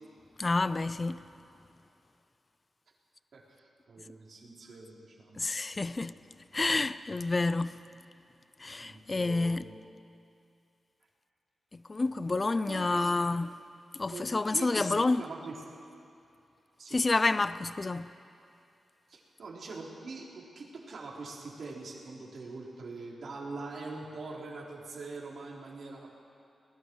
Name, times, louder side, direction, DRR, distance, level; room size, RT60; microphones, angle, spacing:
voice 1, 0.4-1.2 5.4-6.2 6.5-7.7 8.6-9.7 11.7-13.5 13.9-15.2 16.9-18.1, left 3 dB, 30° left, 0.5 m, -29 dB
voice 2, 3.3-5.5 8.7-9.8 12.7-13.1 14.1-14.8 15.1-15.6 16.8-17.0 19.1-26.1, right 3 dB, 60° right, 4.1 m, -43 dB
29.0 x 19.5 x 4.8 m
wide cardioid pair, 110°, 0 cm